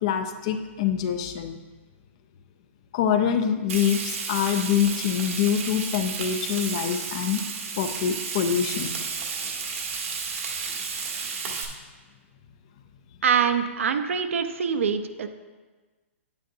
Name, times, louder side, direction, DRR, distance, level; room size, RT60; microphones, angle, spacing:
voice 1, 0.0-1.6 2.9-7.4 7.8-9.0, left 8 dB, 25° left, 8 dB, 0.4 m, -25 dB
Frying (food), 3.7-11.6, right 5 dB, 85° right, 1.8 m, -32 dB
voice 2, 13.2-15.3, right 7 dB, 70° right, 8 dB, 0.7 m, -24 dB
9.1 x 9.0 x 2.7 m, 1.3 s
hypercardioid pair, 175°, 7 cm